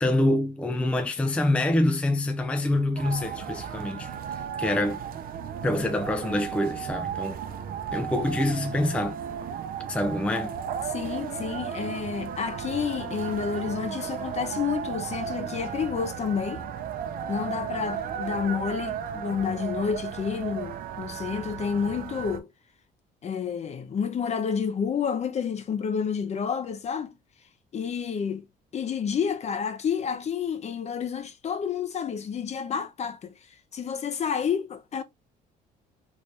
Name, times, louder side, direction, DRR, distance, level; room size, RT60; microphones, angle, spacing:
voice 1, 0.0-4.1 4.6-5.0 5.6-7.4 7.9-9.2 9.9-10.5, left 1 dB, 5° left, 0.4 m, -26 dB
sound 1, 2.9-22.4, right 8 dB, 60° right, 0.6 m, -35 dB
voice 2, 10.9-16.6 17.3-22.5 23.2-27.2 27.7-28.4 28.7-33.3 33.7-35.0, left 7 dB, 40° left, 0.7 m, -29 dB
3.2 x 3.2 x 2.6 m
cardioid pair, 110°, 17 cm